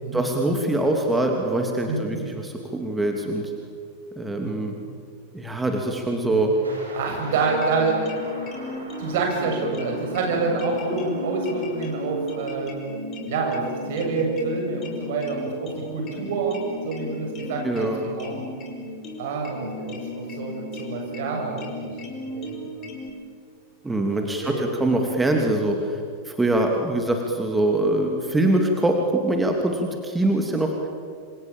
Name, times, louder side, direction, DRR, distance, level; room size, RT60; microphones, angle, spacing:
voice 1, 0.1-3.5 4.2-4.7 5.3-6.5 17.6-18.0 23.8-26.0 26.2-30.7, right 1 dB, 10° right, 2 dB, 3.0 m, -23 dB
sound 1, 6.6-12.6, right 1 dB, 80° right, 6.9 m, -42 dB
voice 2, 6.9-8.2 8.5-8.7 9.0-12.7 13.3-16.6 16.8-18.4 19.2-22.6 23.9-24.1 24.4-25.0, right 4 dB, 55° right, 1 dB, 7.7 m, -27 dB
sound 2, 7.4-23.1, left 2 dB, 30° left, 5.5 m, -35 dB
28.0 x 27.5 x 7.4 m, 2.3 s
figure-of-eight pair, 90°, 0 cm